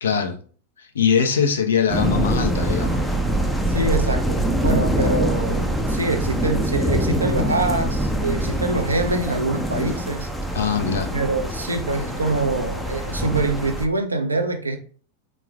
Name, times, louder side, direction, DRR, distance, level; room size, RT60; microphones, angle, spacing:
voice 1, 0.0-0.4 0.8-3.0 10.5-11.1, left 6 dB, 65° left, 0.5 m, -22 dB
sound 1, 1.9-13.9, right 1 dB, ahead, 0.4 m, -24 dB
voice 2, 3.7-10.3 11.1-14.8, right 2 dB, 80° right, 0.5 m, -24 dB
3.7 x 3.1 x 2.3 m
figure-of-eight pair, 90°, 0 cm